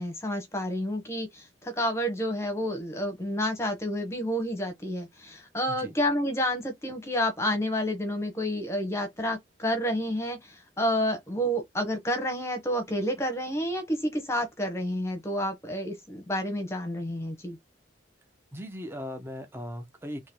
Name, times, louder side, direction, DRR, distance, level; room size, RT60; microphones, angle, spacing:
voice 1, 0.0-17.6, equal, 15° left, 1.0 m, -29 dB
voice 2, 18.5-20.3, equal, 10° right, 0.8 m, -38 dB
3.8 x 3.0 x 4.5 m
head